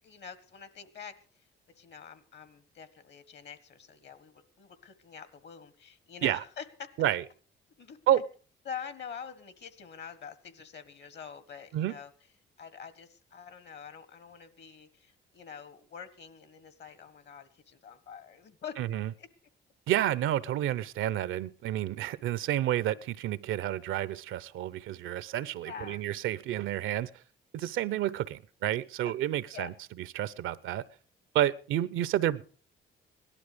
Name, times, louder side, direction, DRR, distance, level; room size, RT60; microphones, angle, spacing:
voice 1, 0.0-1.1 1.8-6.9 7.8-8.2 8.6-12.1 12.6-18.7 19.2-19.3 25.6-26.1 29.0-29.1 29.5-29.7, left 7 dB, 60° left, 14 dB, 1.6 m, -46 dB
voice 2, 18.8-19.1 19.9-27.1 27.5-29.7 30.1-30.8 31.3-32.4, right 12 dB, 85° right, 17 dB, 0.7 m, -30 dB
17.5 x 12.0 x 5.0 m, 0.41 s
cardioid pair, 90°, 20 cm